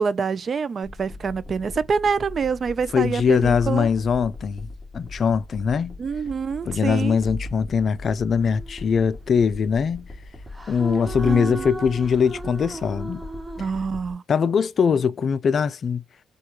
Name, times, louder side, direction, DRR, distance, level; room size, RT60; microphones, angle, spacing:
voice 1, 0.0-3.9 6.0-7.2 11.2-11.7 13.6-14.2, right 5 dB, 45° right, 0.3 m, -26 dB
sound 1, 0.8-14.1, left 2 dB, 5° left, 1.7 m, -39 dB
voice 2, 2.9-4.7 4.9-6.0 6.7-10.1 10.7-13.2 14.3-16.0, left 6 dB, 50° left, 0.4 m, -22 dB
sound 2, 8.4-9.1 10.5-13.7, right 3 dB, 15° right, 0.7 m, -36 dB
4.6 x 2.3 x 2.8 m
cardioid pair, 90°, 0 cm